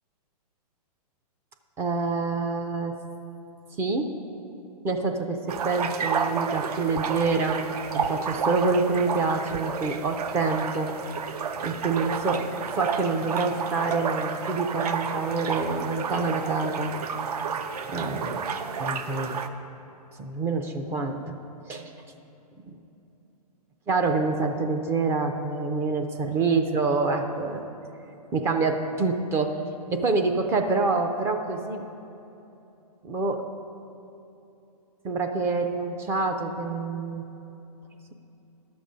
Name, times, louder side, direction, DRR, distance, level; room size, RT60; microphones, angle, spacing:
voice 1, 1.8-2.9 3.8-4.1 4.8-5.4 5.6-7.6 7.9-10.9 11.6-16.9 17.9-18.4 18.8-19.4 20.2-21.3 21.6-21.8 22.6-22.8 23.9-27.6 28.3-29.6 29.9-31.8 33.0-33.4 35.0-37.2, right 3 dB, 15° right, 5 dB, 0.4 m, -26 dB
sound 1, 5.5-19.5, right 6 dB, 70° right, 0.6 m, -31 dB
11.5 x 6.9 x 5.1 m, 2.9 s
hypercardioid pair, 140°, 20 cm